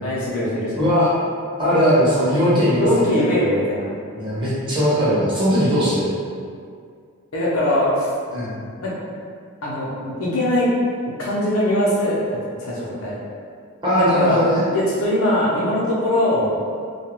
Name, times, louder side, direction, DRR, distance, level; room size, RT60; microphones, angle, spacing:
voice 1, 0.0-0.8 2.8-3.9 7.3-8.1 8.8-8.9 9.6-10.7 11.2-13.2 14.0-14.4 14.7-16.6, left 1 dB, 70° left, -6 dB, 0.6 m, -21 dB
voice 2, 0.8-1.1 1.6-3.2 4.1-6.2 8.3-8.6 13.8-14.6, equal, 20° right, -10 dB, 0.7 m, -19 dB
2.3 x 2.2 x 2.9 m, 2.2 s
head